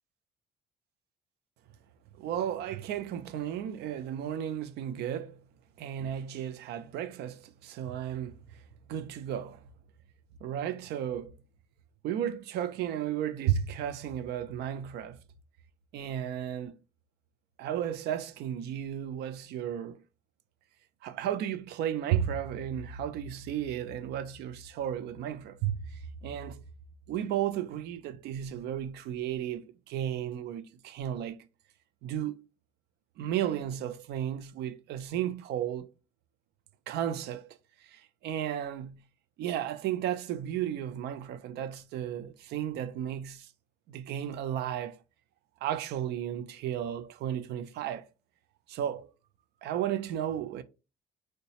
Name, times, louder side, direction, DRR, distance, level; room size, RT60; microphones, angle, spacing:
voice 1, 2.2-5.4 5.8-8.4 8.9-9.6 10.4-11.3 12.0-15.2 15.9-16.7 17.6-20.0 21.0-25.9 26.2-26.6 27.1-31.4 32.0-32.4 33.2-35.9 36.9-37.5 37.9-39.0 39.4-43.5 43.9-45.0 45.6-48.1 48.7-49.1 49.6-50.6, right 10 dB, 75° right, 0.4 m, -34 dB
3.8 x 2.2 x 2.7 m
cardioid pair, 110°, 17 cm